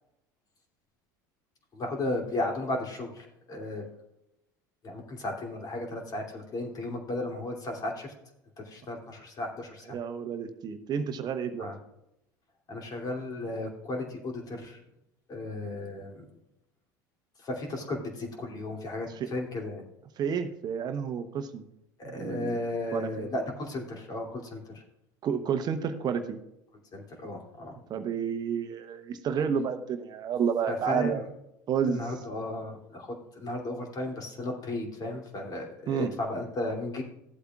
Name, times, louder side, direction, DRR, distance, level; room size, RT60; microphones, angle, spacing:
voice 1, 1.7-3.8 4.8-8.1 8.6-10.0 11.6-11.8 12.7-14.8 15.3-16.2 17.4-19.8 22.0-24.8 26.9-27.7 30.7-31.1 31.9-37.0, left 2 dB, 40° left, 1 dB, 2.8 m, -35 dB
voice 2, 9.9-11.7 19.1-19.3 20.2-21.6 22.0-22.6 22.9-23.3 25.2-26.4 27.9-31.2 31.7-32.0 35.9-36.1, right 7 dB, 45° right, 8 dB, 0.9 m, -30 dB
15.5 x 8.1 x 2.4 m, 0.83 s
hypercardioid pair, 80°, 10 cm